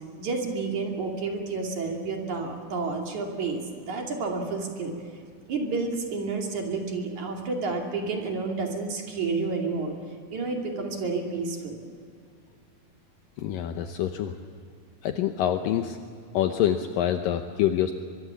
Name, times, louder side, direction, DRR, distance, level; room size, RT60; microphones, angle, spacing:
voice 1, 0.2-5.0 5.5-10.0 10.3-11.8, right 4 dB, 55° right, 1 dB, 3.8 m, -30 dB
voice 2, 13.4-14.3 15.0-16.0 16.3-17.9, left 10 dB, 75° left, 6 dB, 2.4 m, -26 dB
23.5 x 23.0 x 7.1 m, 2.3 s
omnidirectional pair, 4.3 m